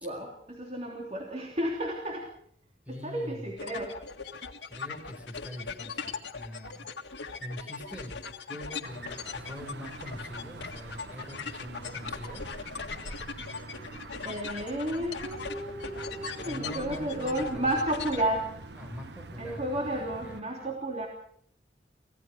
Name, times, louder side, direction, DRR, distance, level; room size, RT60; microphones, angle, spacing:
voice 1, 0.0-2.3 2.9-3.9 14.2-18.5 19.4-21.1, right 1 dB, 35° right, 0 dB, 3.2 m, -32 dB
voice 2, 2.9-3.5 4.7-6.9 7.4-8.2 8.5-12.5 16.3-17.8 18.8-20.7, equal, 10° right, 5 dB, 4.5 m, -43 dB
sound 1, 3.6-18.2, left 5 dB, 85° left, 1.9 m, -40 dB
sound 2, 8.8-20.4, right 2 dB, 70° right, 1.1 m, -45 dB
25.5 x 16.5 x 6.4 m, 0.65 s
head